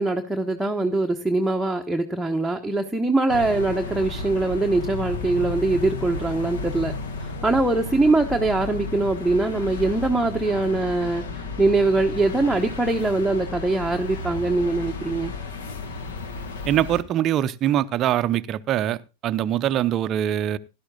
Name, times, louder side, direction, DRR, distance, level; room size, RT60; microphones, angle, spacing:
voice 1, 0.0-6.9 7.2-15.3, right 2 dB, 5° right, 1.0 m, -22 dB
sound 1, 3.3-17.0, left 3 dB, 60° left, 1.7 m, -33 dB
voice 2, 16.7-19.0 19.2-20.6, right 11 dB, 30° right, 0.6 m, -23 dB
17.5 x 12.0 x 2.3 m
figure-of-eight pair, 90°, 0 cm